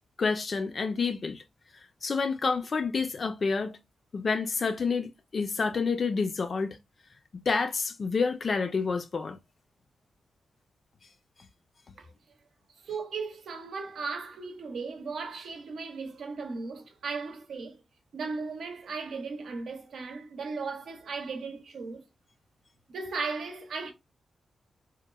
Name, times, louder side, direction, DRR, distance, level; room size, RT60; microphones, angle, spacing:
voice 1, 0.2-1.4 2.0-3.8 4.1-6.8 7.5-9.4, left 4 dB, 50° left, 0.4 m, -28 dB
voice 2, 12.8-17.8 18.1-22.0 22.9-23.9, right 4 dB, 85° right, 0.7 m, -36 dB
2.9 x 2.0 x 2.3 m
wide cardioid pair, 100°, 0 cm